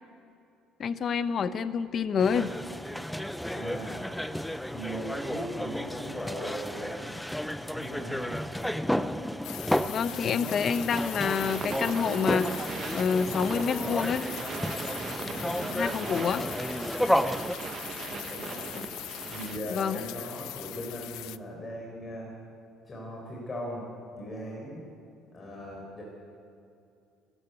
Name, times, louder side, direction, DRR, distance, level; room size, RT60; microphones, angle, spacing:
voice 1, 0.8-2.5 9.9-12.6 12.9-14.3 15.7-16.5 19.7-20.0, left 6 dB, 35° left, 12 dB, 0.8 m, -28 dB
sound 1, 2.2-17.5, equal, ahead, 0.5 m, -32 dB
voice 2, 3.4-4.0 4.7-7.1 7.7-8.4 15.2-15.7 18.1-18.8 19.2-22.3 22.8-24.8 25.3-26.0, equal, 15° left, -2 dB, 4.2 m, -39 dB
sound 2, 9.4-21.4, left 16 dB, 70° left, 0.6 m, -41 dB
sound 3, 10.9-19.8, right 6 dB, 30° right, 0.8 m, -39 dB
29.5 x 14.5 x 8.0 m, 2.5 s
cardioid pair, 170°, 0 cm